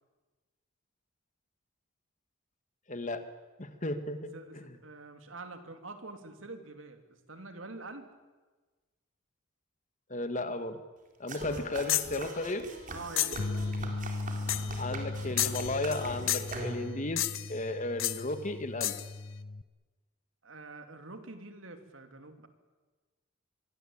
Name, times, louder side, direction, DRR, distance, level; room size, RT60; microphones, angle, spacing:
voice 1, 2.9-3.2 3.6-4.6 10.1-10.8 11.2-12.7 14.8-17.2 17.5-19.0, left 2 dB, 40° left, 9 dB, 1.9 m, -34 dB
voice 2, 4.8-8.1 11.4-11.8 12.9-14.0 20.4-22.5, right 3 dB, 70° right, 7 dB, 3.0 m, -46 dB
sound 1, 11.3-17.1, right 2 dB, 40° right, 4.2 m, -42 dB
sound 2, 11.9-12.2 13.2-13.5 14.5-14.8 15.4-16.0 16.3-16.6 17.2-17.6 18.0-18.2 18.8-19.1, left 14 dB, 70° left, 1.1 m, -31 dB
sound 3, 13.4-19.6, left 2 dB, 55° left, 0.8 m, -38 dB
25.5 x 22.5 x 8.8 m, 1.3 s
head